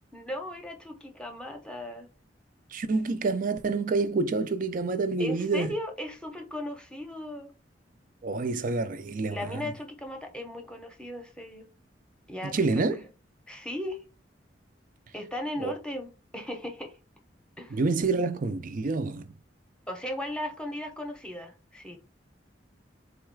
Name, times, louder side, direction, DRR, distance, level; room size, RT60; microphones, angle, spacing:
voice 1, 0.1-2.1 5.2-7.5 9.3-11.7 12.3-13.1 13.5-14.0 15.1-16.9 17.6-17.8 19.9-22.0, left 1 dB, 5° left, 0.8 m, -37 dB
voice 2, 2.7-5.7 8.2-9.6 12.4-13.0 15.6-15.7 17.7-19.3, right 3 dB, 45° right, 0.4 m, -28 dB
4.1 x 2.3 x 4.5 m
head